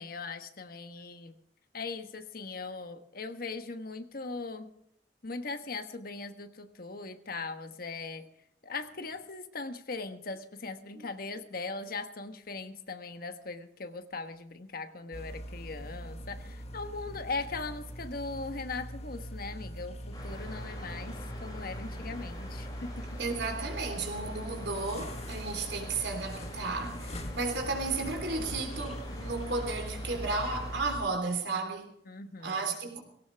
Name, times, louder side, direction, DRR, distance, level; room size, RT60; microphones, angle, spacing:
voice 1, 0.0-1.3 1.7-4.7 5.2-8.3 8.6-23.1 32.1-32.7, left 3 dB, 55° left, 1.3 m, -39 dB
sound 1, 15.1-31.1, equal, 40° left, 1.6 m, -41 dB
sound 2, 20.1-30.8, left 1 dB, 25° left, 6.1 m, -46 dB
voice 2, 23.2-31.9 32.4-33.0, right 3 dB, 75° right, 3.4 m, -33 dB
18.5 x 17.5 x 3.4 m
head